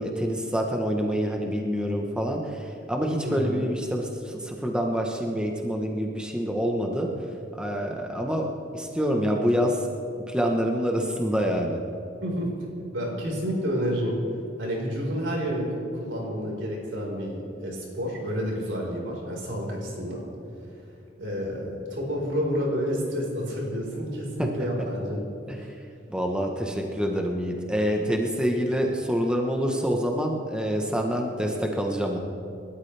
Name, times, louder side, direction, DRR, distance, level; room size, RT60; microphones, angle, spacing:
voice 1, 0.0-7.1 7.5-9.9 10.3-11.8 24.4-24.5 25.5-25.6 26.1-32.2, equal, 5° right, 1 dB, 1.1 m, -26 dB
voice 2, 3.2-3.6 12.2-12.5 12.9-14.1 14.6-15.6 15.9-20.2 21.2-25.2, equal, 85° right, -2 dB, 4.7 m, -29 dB
28.0 x 13.0 x 3.4 m, 2.6 s
head